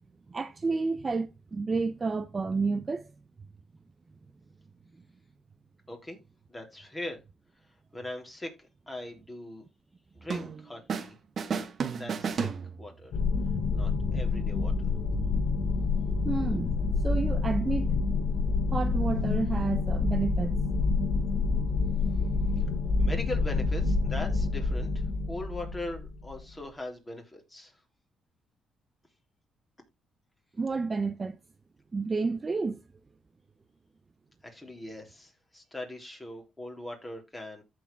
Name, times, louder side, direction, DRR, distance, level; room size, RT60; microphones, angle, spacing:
voice 1, 0.3-3.1 16.2-16.7 17.0-17.9 18.7-20.5 30.6-31.4 31.9-32.8, right 4 dB, 30° right, 0.7 m, -30 dB
voice 2, 5.9-6.2 6.5-7.2 7.9-9.6 10.2-11.2 11.5-11.7 12.0-12.5 12.8-13.1 13.7-14.9 23.0-27.7 34.4-37.6, left 1 dB, 15° left, 3.6 m, -40 dB
sound 1, 10.3-11.1 11.4-13.1, right 6 dB, 50° right, 1.3 m, -33 dB
sound 2, 13.1-26.4, left 4 dB, 65° left, 1.8 m, -28 dB
14.5 x 4.9 x 3.5 m
cardioid pair, 90°, 0 cm